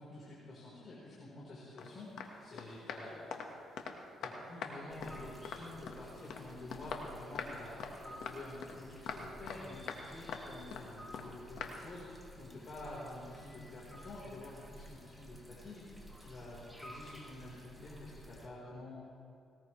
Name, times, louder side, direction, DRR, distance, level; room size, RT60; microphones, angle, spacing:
voice 1, 0.0-3.4 4.2-15.8 16.2-19.1, left 2 dB, 45° left, -6 dB, 4.4 m, -49 dB
sound 1, 1.8-1.9 2.2-2.3 2.6-4.0 4.2-4.7 5.0-6.0 6.3-6.4 6.7-7.5 7.8-7.9 8.2-8.8 9.1-9.6 9.9-10.0 10.3-10.9 11.1-11.3 11.6-11.7, left 6 dB, 80° left, 1.6 m, -43 dB
sound 2, 4.9-18.5, equal, ahead, 2.5 m, -54 dB
20.0 x 19.0 x 3.3 m, 2.7 s
cardioid pair, 90°, 0 cm